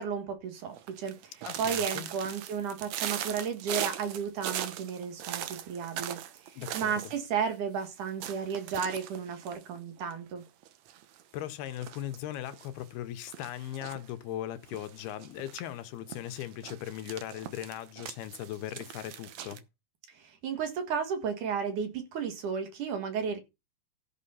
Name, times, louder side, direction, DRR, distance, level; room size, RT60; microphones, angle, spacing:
voice 1, 0.0-1.3 1.6-6.2 6.5-10.4 20.1-23.4, right 6 dB, 60° right, 2.8 m, -33 dB
sound 1, 0.7-7.2 7.4-7.5 7.8-7.9 8.2-10.3 10.6-11.2 11.7-12.7 13.3-14.1 14.7-15.6 16.1-19.6, right 11 dB, 85° right, 1.5 m, -39 dB
voice 2, 1.4-2.1 6.6-7.1 11.3-19.6, left 12 dB, 80° left, 2.9 m, -39 dB
14.0 x 6.3 x 5.6 m
omnidirectional pair, 4.5 m